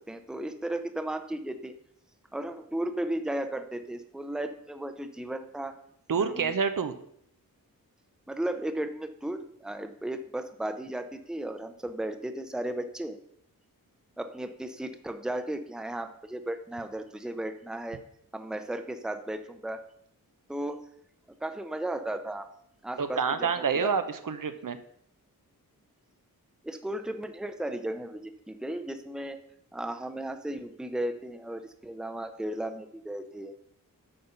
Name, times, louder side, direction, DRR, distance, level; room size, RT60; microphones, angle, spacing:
voice 1, 0.1-1.7 2.3-5.8 6.2-6.5 8.3-13.2 14.2-18.0 18.3-19.8 20.5-20.8 21.4-22.5 22.8-23.9 26.6-29.4 29.7-33.6, right 1 dB, ahead, 8 dB, 0.7 m, -35 dB
voice 2, 6.1-7.0 23.0-24.8, right 6 dB, 65° right, 9 dB, 0.8 m, -28 dB
8.9 x 4.2 x 6.8 m, 0.69 s
wide cardioid pair, 90°, 36 cm